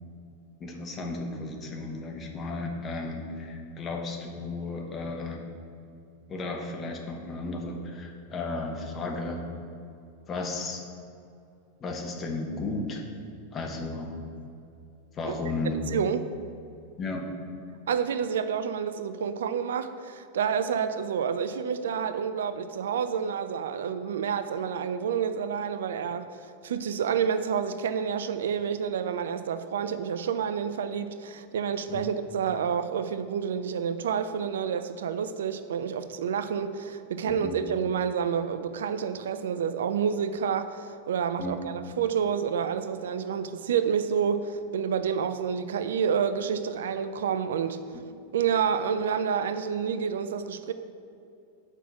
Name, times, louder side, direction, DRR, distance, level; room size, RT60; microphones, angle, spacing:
voice 1, 0.6-5.4 6.3-9.4 10.3-10.8 11.8-13.1 13.5-14.1 15.1-15.8 17.0-17.3 31.9-32.1 37.2-37.6 41.4-41.7 47.9-48.1, left 3 dB, 25° left, 2 dB, 1.1 m, -34 dB
voice 2, 15.9-16.3 17.9-47.8 48.3-50.7, right 7 dB, 60° right, 11 dB, 0.3 m, -29 dB
6.4 x 5.0 x 6.2 m, 2.6 s
figure-of-eight pair, 90°, 0 cm